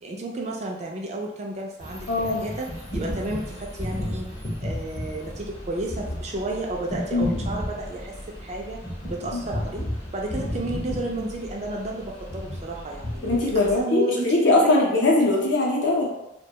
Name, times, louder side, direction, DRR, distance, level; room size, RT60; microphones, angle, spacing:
voice 1, 0.0-4.3 4.6-8.1 8.4-8.8 9.1-9.9 10.1-14.8, right 2 dB, 35° right, 0 dB, 0.3 m, -32 dB
sound 1, 1.8-13.8, equal, 30° left, 0.6 m, -33 dB
voice 2, 2.1-2.4 7.1-7.3 9.3-9.4 13.2-14.0 14.3-16.1, left 2 dB, 70° left, -3 dB, 0.6 m, -21 dB
2.2 x 2.1 x 2.7 m, 0.91 s
head